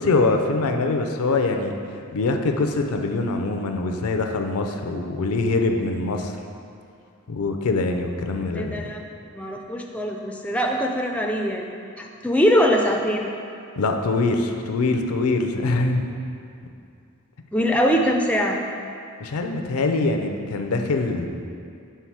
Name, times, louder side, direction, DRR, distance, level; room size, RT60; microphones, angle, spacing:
voice 1, 0.0-6.4 7.3-8.8 13.8-16.1 19.2-21.3, left 3 dB, 80° left, 5 dB, 0.5 m, -23 dB
voice 2, 8.5-9.0 9.3-13.3 17.5-18.6, equal, 5° left, 1 dB, 0.3 m, -22 dB
5.6 x 4.2 x 4.6 m, 2.4 s
head